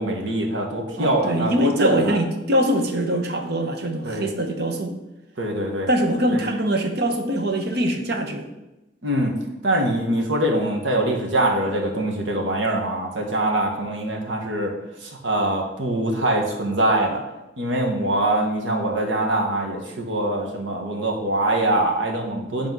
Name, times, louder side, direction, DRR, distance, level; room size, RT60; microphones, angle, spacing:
voice 1, 0.0-2.2 4.0-4.3 5.4-5.9 6.3-6.4 9.0-9.3 9.6-14.7 15.0-17.2 17.6-22.7, right 1 dB, 80° right, 1 dB, 1.4 m, -23 dB
voice 2, 1.0-4.9 5.9-8.5, right 1 dB, 60° right, 5 dB, 0.9 m, -23 dB
8.0 x 3.5 x 6.0 m, 0.97 s
head